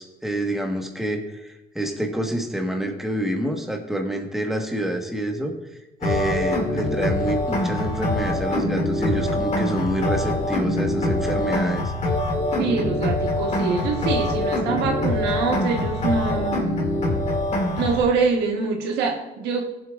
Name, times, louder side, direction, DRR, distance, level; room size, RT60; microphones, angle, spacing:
voice 1, 0.0-5.5 6.0-11.9, right 1 dB, ahead, 2 dB, 1.4 m, -27 dB
sound 1, 6.0-18.0, left 1 dB, 40° left, 2.4 m, -24 dB
voice 2, 12.6-16.7 17.8-19.7, right 4 dB, 85° right, 2 dB, 1.4 m, -24 dB
18.0 x 7.7 x 2.5 m, 0.96 s
cardioid pair, 110°, 17 cm